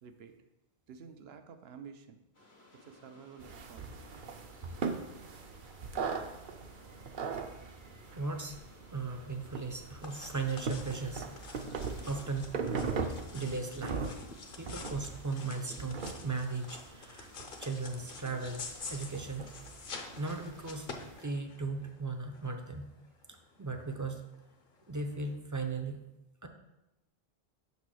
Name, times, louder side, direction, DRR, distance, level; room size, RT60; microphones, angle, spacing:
voice 1, 0.0-0.3 0.9-2.2 2.7-4.0, right 6 dB, 85° right, 8 dB, 0.9 m, -51 dB
sound 1, 2.3-20.5, left 2 dB, 85° left, 1.8 m, -60 dB
sound 2, 3.4-21.2, right 5 dB, 60° right, 0.7 m, -40 dB
voice 2, 7.3-8.6 8.9-11.8 12.0-12.6 13.3-14.0 14.6-17.3 17.6-19.5 20.2-20.9 21.2-22.9 23.6-24.2 24.9-26.0 26.4-26.5, right 3 dB, 25° right, 5 dB, 0.4 m, -37 dB
sound 3, 10.0-25.4, left 4 dB, 60° left, 0.9 m, -48 dB
6.1 x 4.1 x 6.2 m, 0.94 s
omnidirectional pair, 1.0 m